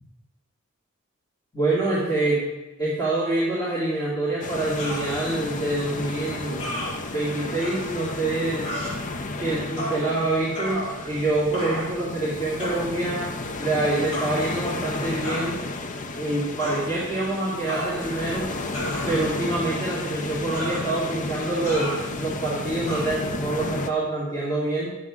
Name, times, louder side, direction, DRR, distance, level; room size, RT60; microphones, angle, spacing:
voice 1, 1.5-2.4 2.8-6.7 7.1-8.7 9.4-13.3 13.6-15.6 16.2-18.5 19.1-21.9 22.2-25.0, right 2 dB, 20° left, -10 dB, 2.4 m, -26 dB
sound 1, 4.4-23.9, left 2 dB, 35° left, 0.5 m, -33 dB
sound 2, 4.8-5.1 6.6-6.9 7.6-7.8 8.6-8.9 9.8-10.0 10.5-11.2 11.5-12.0 12.6-12.9 14.1-14.3 15.2-15.5 16.6-16.8 17.7-18.2 18.7-19.4 20.5-20.9 21.6-22.0 22.9-23.0, equal, 55° left, 3.4 m, -32 dB
10.5 x 7.1 x 3.7 m, 1.1 s
head